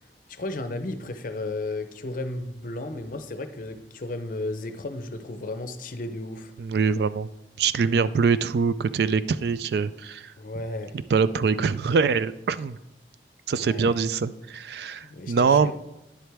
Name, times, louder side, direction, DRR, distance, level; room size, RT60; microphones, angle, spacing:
voice 1, 0.3-6.5 10.4-10.9 13.5-14.0 15.0-15.7, left 2 dB, 50° left, 9 dB, 0.6 m, -34 dB
voice 2, 6.6-7.3 7.6-10.3 11.1-12.8 13.5-15.7, right 5 dB, 65° right, 15 dB, 0.3 m, -23 dB
10.5 x 7.8 x 3.4 m, 0.92 s
head